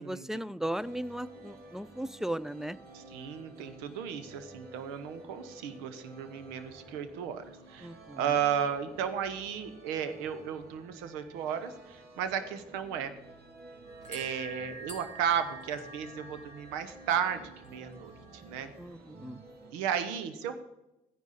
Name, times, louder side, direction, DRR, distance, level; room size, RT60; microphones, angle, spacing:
voice 1, 0.0-2.8 7.8-8.3 18.8-19.4, right 1 dB, ahead, 19 dB, 0.5 m, -37 dB
sound 1, 0.8-19.7, right 2 dB, 65° right, 2.7 m, -52 dB
voice 2, 2.9-7.4 7.7-7.9 8.2-13.1 14.1-18.7 19.7-20.5, right 8 dB, 90° right, 11 dB, 1.0 m, -34 dB
sound 2, 13.8-18.9, right 2 dB, 45° right, 4.4 m, -48 dB
14.0 x 10.0 x 4.2 m, 0.91 s
hypercardioid pair, 50°, 18 cm